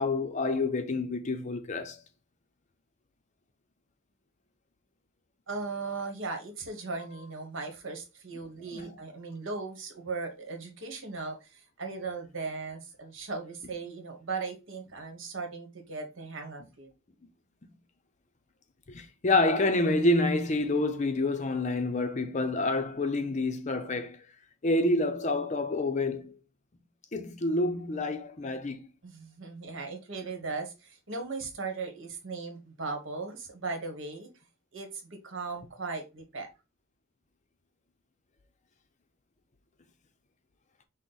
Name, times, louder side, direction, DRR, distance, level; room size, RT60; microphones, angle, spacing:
voice 1, 0.0-2.0 8.7-9.0 18.9-24.2 24.6-26.4 27.1-28.9, left 2 dB, 35° left, 0.6 m, -28 dB
voice 2, 5.5-16.9 29.0-34.3 34.7-36.5, right 4 dB, 65° right, 1.3 m, -38 dB
6.1 x 2.1 x 3.9 m
head